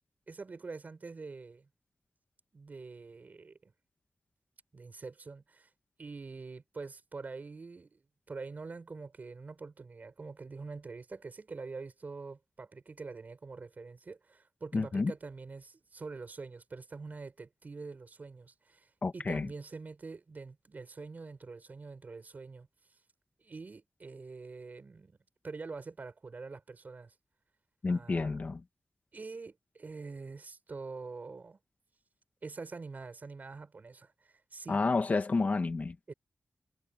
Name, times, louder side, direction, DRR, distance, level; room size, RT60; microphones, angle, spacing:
voice 1, 0.3-1.7 2.5-3.7 4.7-5.7 6.0-22.7 23.4-25.2 25.4-27.2 27.9-28.4 29.1-31.6 32.4-34.8 36.1-36.2, right 4 dB, 40° right, 6.9 m, -45 dB
voice 2, 14.7-15.1 19.0-19.5 27.8-28.6 34.7-36.0, left 3 dB, 40° left, 2.4 m, -30 dB
wide cardioid pair, 160°, 4 cm